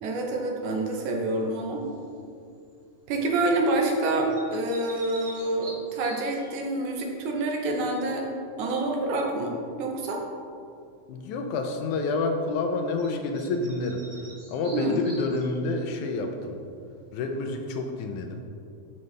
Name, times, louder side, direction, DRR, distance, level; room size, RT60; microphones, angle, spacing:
voice 1, 0.0-1.9 3.1-8.3 8.6-10.2 14.7-15.0, right 2 dB, 80° right, 1 dB, 2.4 m, -27 dB
sound 1, 1.8-2.2 4.0-6.6 13.0-13.1 13.3-15.8, right 2 dB, 35° right, 1.1 m, -46 dB
voice 2, 11.1-16.6 17.1-18.4, left 3 dB, 85° left, 4 dB, 2.2 m, -29 dB
11.0 x 5.6 x 3.3 m, 2.5 s
omnidirectional pair, 3.4 m